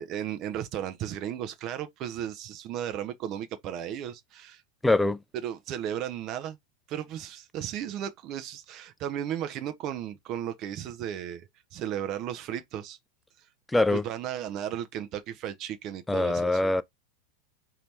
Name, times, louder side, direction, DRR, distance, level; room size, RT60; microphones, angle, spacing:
voice 1, 0.0-4.6 5.4-6.6 6.9-13.0 13.9-16.7, right 10 dB, 40° right, 0.6 m, -35 dB
voice 2, 4.8-5.2 13.7-14.0 16.1-16.8, left 2 dB, 5° left, 0.4 m, -23 dB
4.0 x 2.8 x 3.3 m
figure-of-eight pair, 85°, 0 cm